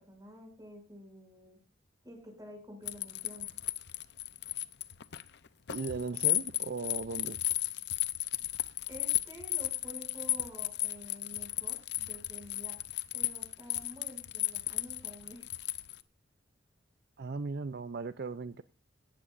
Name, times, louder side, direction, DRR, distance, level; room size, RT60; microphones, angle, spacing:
voice 1, 0.0-1.6 2.0-3.5 8.9-12.7 13.1-15.4, equal, 20° right, 2 dB, 6.9 m, -50 dB
sound 1, 2.9-16.0, left 14 dB, 65° left, 0.7 m, -34 dB
voice 2, 5.7-7.4 17.2-18.6, right 4 dB, 60° right, 12 dB, 0.5 m, -37 dB
17.5 x 14.0 x 2.6 m, 0.32 s
head